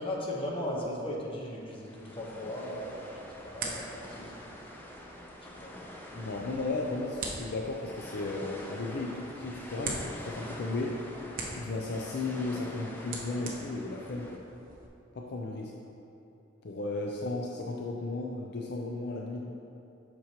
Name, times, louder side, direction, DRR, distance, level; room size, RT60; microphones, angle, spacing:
voice 1, 0.0-4.3 5.4-5.7 17.1-17.3, left 1 dB, 30° left, -3 dB, 1.1 m, -37 dB
sound 1, 1.4-14.4, left 1 dB, 10° left, 0.6 m, -46 dB
sound 2, 2.7-14.9, right 3 dB, 45° right, 0.9 m, -44 dB
voice 2, 6.1-11.0 11.4-14.4 15.1-15.7 16.6-19.5, left 2 dB, 60° left, -1 dB, 0.5 m, -35 dB
8.4 x 6.1 x 3.0 m, 2.8 s
head